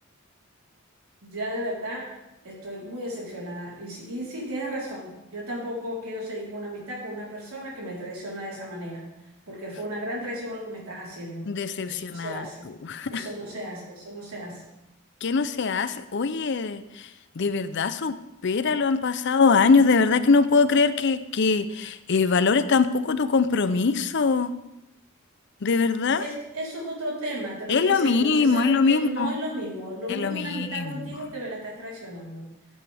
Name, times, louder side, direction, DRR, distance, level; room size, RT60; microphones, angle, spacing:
voice 1, 1.2-2.1 2.4-9.0 9.5-11.5 11.8-12.7 13.1-14.6 26.2-32.4, equal, 85° right, -4 dB, 4.0 m, -34 dB
voice 2, 11.4-13.3 15.2-17.1 17.4-18.2 18.4-24.5 25.6-26.2 27.7-29.3 30.1-31.1, left 4 dB, 55° left, 13 dB, 0.6 m, -22 dB
15.0 x 8.3 x 3.5 m, 0.92 s
head